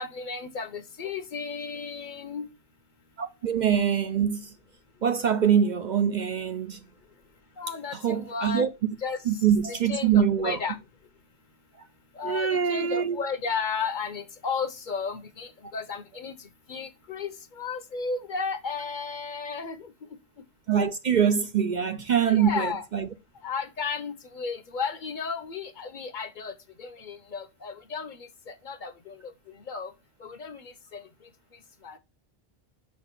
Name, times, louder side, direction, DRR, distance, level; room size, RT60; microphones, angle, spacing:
voice 1, 0.0-2.5 7.6-8.6 9.0-9.2 9.7-10.8 12.2-16.3 16.7-19.9 22.3-22.9 23.4-26.5 26.8-29.2 29.7-29.9 30.2-31.0 31.8-32.0, left 5 dB, 55° left, 0.8 m, -34 dB
voice 2, 3.2-4.5 5.0-6.8 7.9-8.9 9.3-10.6 12.2-13.3 20.7-23.1, right 8 dB, 55° right, 0.6 m, -24 dB
5.8 x 4.3 x 5.7 m
omnidirectional pair, 1.1 m